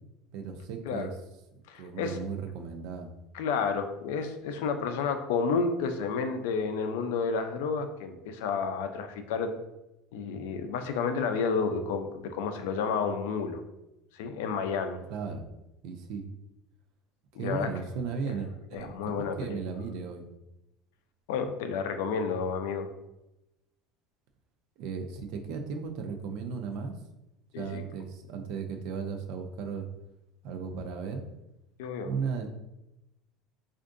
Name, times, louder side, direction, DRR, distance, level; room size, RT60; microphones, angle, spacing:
voice 1, 0.3-1.1 1.8-3.1 15.1-15.5 15.8-16.3 17.3-20.3 24.8-26.9 27.6-29.9 30.4-31.2 32.0-32.5, right 5 dB, 65° right, 6 dB, 0.5 m, -36 dB
voice 2, 1.7-2.2 3.3-9.5 10.1-13.6 14.1-15.0 17.4-17.7 18.3-18.4 18.7-19.6 21.3-22.9 27.5-27.8 31.8-32.1, left 5 dB, 85° left, 7 dB, 0.4 m, -31 dB
4.4 x 2.5 x 2.5 m, 0.93 s
cardioid pair, 145°, 0 cm